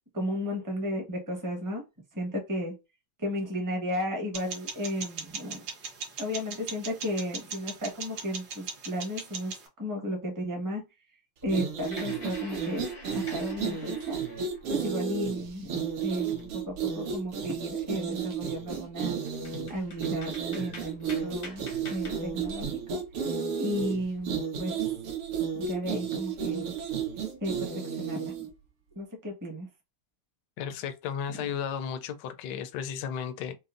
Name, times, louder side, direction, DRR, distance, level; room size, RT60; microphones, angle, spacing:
voice 1, 0.1-1.8 2.1-2.7 3.2-5.6 6.2-10.8 11.4-12.8 13.1-14.2 14.7-19.2 19.7-21.6 21.9-23.0 23.6-24.7 25.5-26.6 27.4-28.5 28.9-29.7 31.3-31.4, equal, 15° right, 0.7 m, -34 dB
sound 1, 4.3-9.7, right 5 dB, 60° right, 1.2 m, -40 dB
sound 2, 11.4-28.5, right 7 dB, 80° right, 2.0 m, -33 dB
sound 3, 11.8-14.9 15.3-16.8 17.2-17.3 17.7-18.2 18.8-18.9 19.3-22.7, left 2 dB, 55° left, 0.5 m, -46 dB
voice 2, 30.6-33.6, left 8 dB, 75° left, 1.0 m, -34 dB
5.3 x 2.0 x 2.5 m
omnidirectional pair, 2.4 m